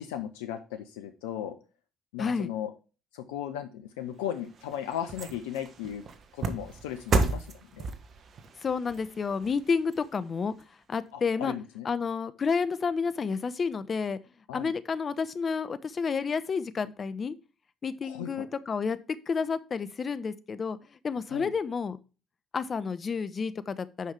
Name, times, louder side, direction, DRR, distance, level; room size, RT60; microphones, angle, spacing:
voice 1, 0.0-1.6 2.1-2.7 3.1-6.0 6.3-7.9 11.1-11.9 14.5-14.7 18.0-18.5 21.3-21.5, left 10 dB, 80° left, 7 dB, 0.7 m, -36 dB
voice 2, 2.2-2.5 8.6-10.5 10.9-11.5 11.8-14.2 14.5-17.3 17.8-19.0 19.3-20.8 21.0-22.0 22.5-24.1, left 5 dB, 40° left, 14 dB, 0.9 m, -30 dB
sound 1, 4.1-10.6 11.1-11.2, right 4 dB, 50° right, 1.4 m, -34 dB
9.4 x 5.6 x 3.4 m, 0.33 s
hypercardioid pair, 55°, 0 cm